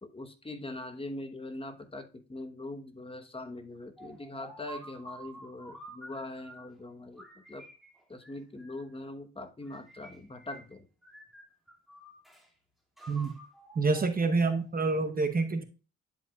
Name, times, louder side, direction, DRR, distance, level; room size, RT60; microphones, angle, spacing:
voice 1, 0.0-7.6 8.1-10.9, left 2 dB, 20° left, 7 dB, 1.0 m, -42 dB
sound 1, 4.0-6.7 7.2-9.0 9.6-10.7 11.0-12.5 13.0-14.7, right 1 dB, ahead, 2.4 m, -50 dB
voice 2, 13.7-15.6, right 3 dB, 30° right, 9 dB, 0.8 m, -27 dB
10.5 x 5.2 x 2.3 m, 0.33 s
cardioid pair, 90°, 30 cm